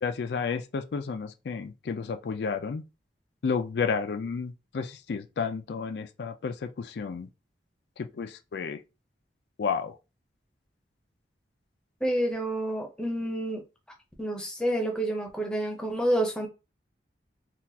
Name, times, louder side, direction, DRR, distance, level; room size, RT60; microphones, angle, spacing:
voice 1, 0.0-2.8 3.4-7.3 8.0-8.8 9.6-10.0, left 5 dB, 75° left, 0.4 m, -31 dB
voice 2, 12.0-13.6 14.2-16.5, right 1 dB, 5° left, 0.7 m, -28 dB
3.9 x 2.4 x 2.7 m
head